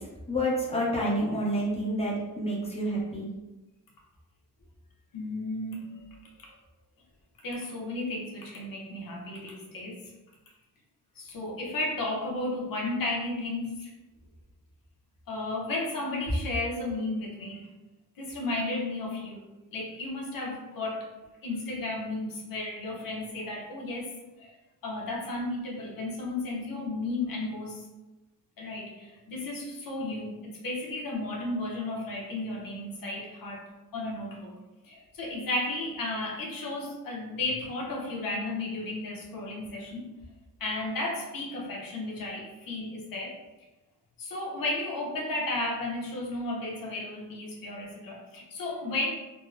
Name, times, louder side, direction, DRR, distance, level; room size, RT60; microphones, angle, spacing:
voice 1, 0.3-3.3, equal, 15° left, -5 dB, 0.8 m, -28 dB
voice 2, 5.1-6.1 6.4-6.5 7.4-10.1 11.2-13.9 15.3-17.7 18.2-19.4 19.7-21.1 21.4-24.5 24.8-27.9 28.6-33.6 33.9-34.6 34.8-40.1 40.6-43.4 44.2-49.1, left 2 dB, 75° left, -1 dB, 0.8 m, -34 dB
3.6 x 2.1 x 2.5 m, 1.1 s
wide cardioid pair, 135°, 34 cm